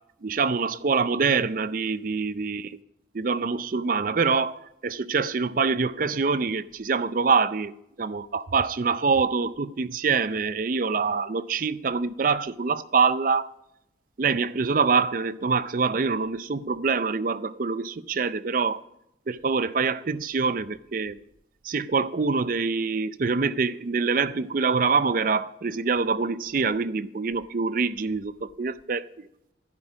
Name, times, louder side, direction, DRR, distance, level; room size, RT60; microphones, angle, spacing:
voice 1, 0.2-2.7 3.1-13.5 14.2-18.8 19.3-21.2 21.6-29.1, right 4 dB, 45° right, 0.5 m, -25 dB
12.5 x 10.5 x 3.9 m
head